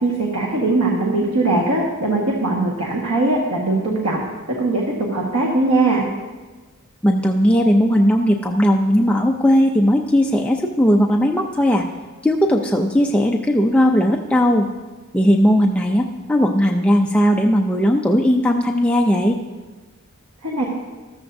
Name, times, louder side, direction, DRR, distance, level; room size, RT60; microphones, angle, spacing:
voice 1, 0.0-4.2 4.6-6.1 20.4-20.7, right 2 dB, 85° right, -2 dB, 1.5 m, -20 dB
voice 2, 7.0-11.8 12.2-14.7 15.1-19.4, equal, 5° left, 0 dB, 0.4 m, -17 dB
14.0 x 13.5 x 2.7 m, 1.3 s
head